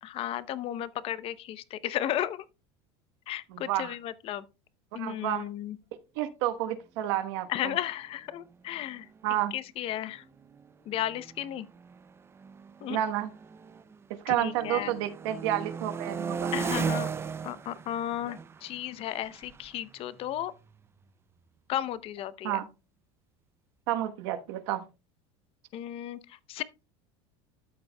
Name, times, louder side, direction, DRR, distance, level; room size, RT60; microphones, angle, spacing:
voice 1, 0.0-2.4 3.3-4.4 4.9-5.8 7.5-9.1 9.5-10.2 10.9-11.7 12.8-13.0 14.3-14.9 16.5-17.1 17.4-20.5 21.7-22.6 25.7-26.6, left 12 dB, 45° left, 0.7 m, -34 dB
voice 2, 3.5-3.9 4.9-5.5 6.1-7.8 9.2-9.5 12.9-13.3 14.2-16.5 22.4-22.7 23.9-24.8, right 12 dB, 80° right, 1.2 m, -30 dB
sound 1, 8.7-8.8 9.0-9.4 10.1-14.0 14.4-21.0, right 6 dB, 20° right, 0.5 m, -37 dB
12.5 x 7.0 x 2.2 m
supercardioid pair, 130°, 14 cm